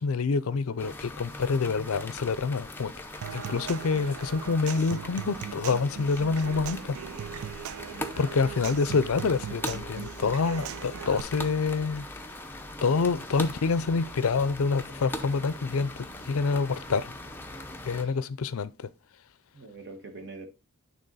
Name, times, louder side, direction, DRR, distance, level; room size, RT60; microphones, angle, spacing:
voice 1, 0.0-2.9 3.3-7.0 8.2-12.1 12.8-17.1 17.8-18.9, left 4 dB, 70° left, 0.5 m, -27 dB
sound 1, 0.8-18.0, left 1 dB, 10° left, 0.6 m, -40 dB
Human voice / Acoustic guitar / Percussion, 3.2-11.2, right 9 dB, 70° right, 0.3 m, -39 dB
voice 2, 19.5-20.5, right 3 dB, 50° right, 1.4 m, -44 dB
9.0 x 3.5 x 4.0 m
head